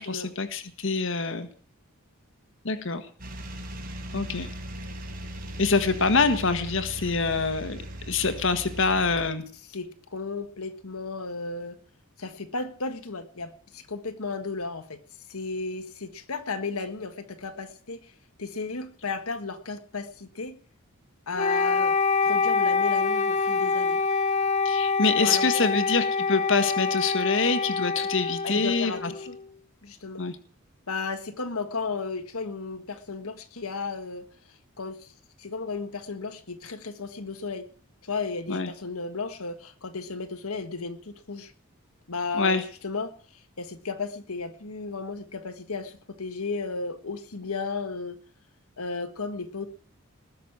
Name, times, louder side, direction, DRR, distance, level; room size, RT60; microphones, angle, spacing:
voice 1, 0.0-1.5 2.6-3.1 4.1-4.5 5.6-9.4 24.6-29.1 30.2-30.4 38.5-38.7 42.4-42.6, left 4 dB, 55° left, 9 dB, 1.6 m, -25 dB
sound 1, 3.2-9.3, right 1 dB, 40° right, 4.5 m, -38 dB
voice 2, 9.7-11.8 12.2-15.0 15.3-18.1 18.4-20.6 21.3-24.0 25.2-25.8 28.4-29.4 29.8-30.2 30.9-34.3 34.8-35.1 35.4-37.7 38.0-41.5 42.1-48.2 48.8-49.7, left 4 dB, 75° left, 8 dB, 1.6 m, -34 dB
Wind instrument woodwind instrument, 21.4-29.4, left 4 dB, 30° left, 1.1 m, -25 dB
20.0 x 6.7 x 9.9 m, 0.43 s
head